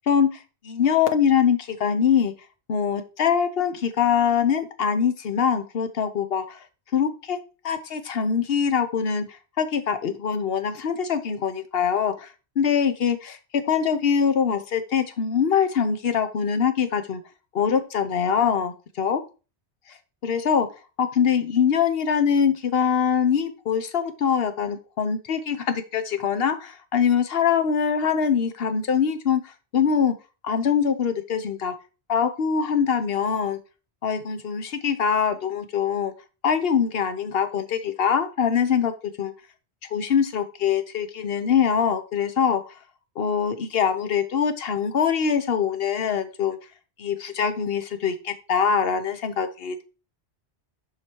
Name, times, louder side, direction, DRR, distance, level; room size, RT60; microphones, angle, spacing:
voice 1, 0.1-2.3 2.7-6.6 6.9-7.4 7.6-12.3 12.6-17.2 17.5-19.2 20.2-20.7 21.0-30.1 30.4-31.7 32.1-33.6 34.0-36.1 36.4-38.9 39.2-39.3 39.9-42.7 43.2-46.6 47.0-49.8, left 7 dB, 60° left, 9 dB, 1.1 m, -23 dB
7.4 x 5.0 x 4.5 m, 0.33 s
omnidirectional pair, 1.1 m